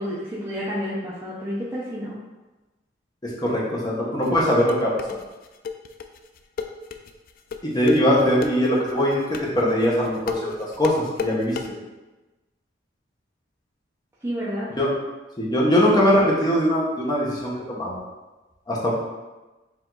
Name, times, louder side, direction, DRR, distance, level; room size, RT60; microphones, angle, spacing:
voice 1, 0.0-2.2 14.2-14.7, equal, 15° right, -8 dB, 0.6 m, -30 dB
voice 2, 3.2-4.9 7.6-9.2 9.5-10.5 10.8-11.6 14.8-14.9 15.4-18.0 18.7-18.9, equal, 20° left, -5 dB, 1.0 m, -21 dB
sound 1, 4.2-11.7, left 6 dB, 50° left, 0.3 m, -32 dB
4.6 x 2.8 x 3.8 m, 1.1 s
head